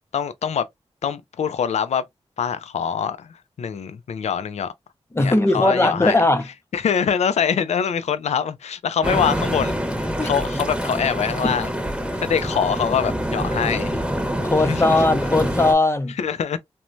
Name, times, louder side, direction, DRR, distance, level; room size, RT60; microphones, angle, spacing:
voice 1, 0.1-0.7 1.0-2.0 2.4-4.7 5.2-6.2 6.7-11.7 12.2-14.0 14.7-14.9 16.2-16.6, left 7 dB, 80° left, 0.4 m, -24 dB
voice 2, 5.1-6.5 9.1-9.2 10.2-10.3 11.4-11.5 12.1-12.2 14.4-16.2, left 2 dB, 25° left, 0.6 m, -19 dB
sound 1, 9.0-15.7, equal, 10° right, 0.9 m, -25 dB
3.1 x 2.1 x 2.5 m
wide cardioid pair, 75°, 11 cm